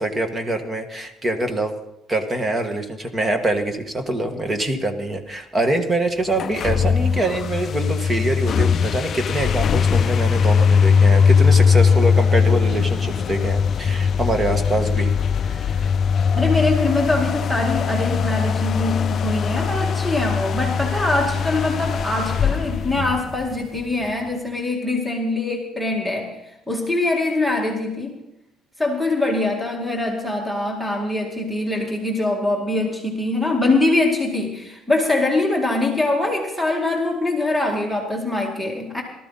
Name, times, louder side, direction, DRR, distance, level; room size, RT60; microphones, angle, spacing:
voice 1, 0.0-1.7 2.1-15.1 15.4-15.9, right 1 dB, 20° right, 6 dB, 1.7 m, -24 dB
sound 1, 6.3-23.8, left 6 dB, 40° left, 0.4 m, -20 dB
voice 2, 16.3-26.4 26.7-28.2 28.8-39.0, left 2 dB, 5° right, 0 dB, 2.2 m, -23 dB
18.0 x 13.5 x 4.2 m, 0.87 s
cardioid pair, 135°, 0 cm